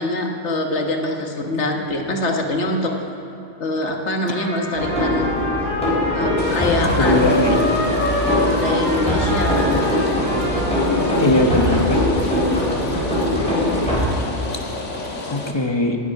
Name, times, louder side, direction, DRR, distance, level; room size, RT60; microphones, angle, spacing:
voice 1, 0.0-2.9 3.6-5.4 6.1-7.2 8.5-9.9 10.6-11.2, left 2 dB, 70° left, 2 dB, 1.6 m, -24 dB
Trumpet, 4.3-11.6, left 1 dB, 20° right, 4.1 m, -27 dB
sound 1, 4.7-14.1, left 1 dB, 5° left, 4.0 m, -21 dB
Rain, 6.4-15.5, left 2 dB, 90° left, 1.7 m, -31 dB
voice 2, 7.0-7.6 11.2-12.0 15.3-16.0, left 2 dB, 25° left, 3 dB, 1.0 m, -20 dB
18.5 x 8.3 x 5.8 m, 2.9 s
omnidirectional pair, 1.2 m